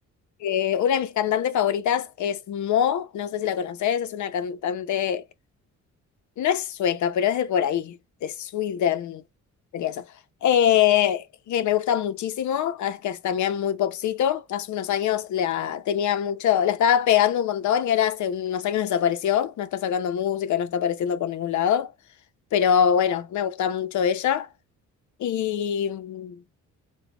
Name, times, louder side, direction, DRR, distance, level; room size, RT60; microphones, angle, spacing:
voice 1, 0.4-5.2 6.4-8.0 8.2-9.2 9.7-10.0 10.4-21.9 22.5-24.5 25.2-26.4, left 9 dB, 70° left, 0.8 m, -24 dB
5.0 x 2.3 x 3.4 m
cardioid pair, 90°, 30 cm